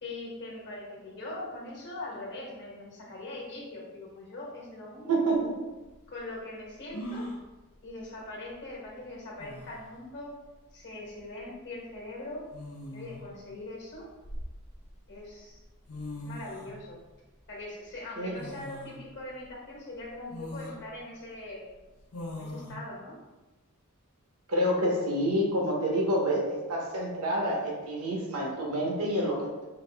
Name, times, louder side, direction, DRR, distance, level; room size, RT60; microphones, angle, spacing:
voice 1, 0.0-5.3 6.1-7.3 7.8-10.3 10.7-12.4 12.9-14.1 15.1-15.6 16.1-17.0 17.5-21.7 22.3-23.2, left 2 dB, 55° left, -3 dB, 1.2 m, -41 dB
voice 2, 5.1-5.5 18.2-18.4 24.5-29.7, right 1 dB, 80° right, -2 dB, 0.9 m, -28 dB
sound 1, 5.3-5.4 6.9-7.4 8.9-9.0 9.4-9.9 11.2-11.4 12.5-13.3 13.9-14.9 15.6-15.7 15.9-16.8 18.4-19.0 19.5-19.6 20.3-20.8 22.1-22.7, left 1 dB, 70° left, 0.8 m, -40 dB
4.0 x 2.6 x 3.3 m, 1.1 s
head